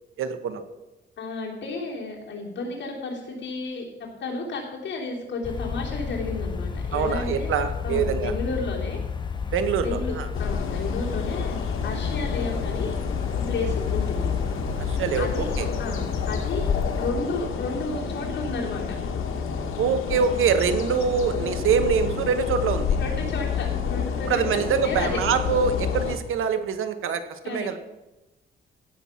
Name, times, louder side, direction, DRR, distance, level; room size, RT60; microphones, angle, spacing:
voice 1, 0.2-0.6 6.9-8.3 9.5-10.3 14.9-15.7 19.8-23.0 24.3-27.8, right 6 dB, 90° right, 9 dB, 1.1 m, -24 dB
voice 2, 1.2-9.0 9.8-11.5 11.8-12.9 13.3-14.3 15.2-15.5 15.8-16.7 17.0-18.8 23.0-25.2 27.4-27.7, left 3 dB, 60° left, -2 dB, 3.0 m, -32 dB
sound 1, 5.4-17.1, left 5 dB, 20° left, 0.7 m, -31 dB
sound 2, 10.3-26.2, left 6 dB, 90° left, 1.3 m, -29 dB
16.0 x 6.0 x 5.7 m, 1.0 s
wide cardioid pair, 175°, 21 cm